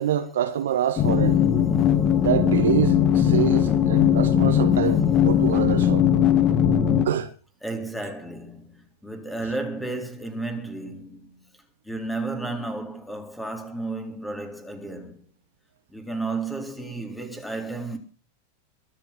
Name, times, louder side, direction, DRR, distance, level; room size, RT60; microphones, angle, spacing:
voice 1, 0.0-1.4 2.2-6.1 7.0-7.3, right 10 dB, 60° right, 1.8 m, -26 dB
sound 1, 1.0-7.1, left 9 dB, 30° left, 2.0 m, -19 dB
voice 2, 7.6-11.5 11.8-15.3 15.9-18.0, right 2 dB, 5° left, 3.8 m, -33 dB
23.0 x 7.7 x 6.1 m
figure-of-eight pair, 90°, 0 cm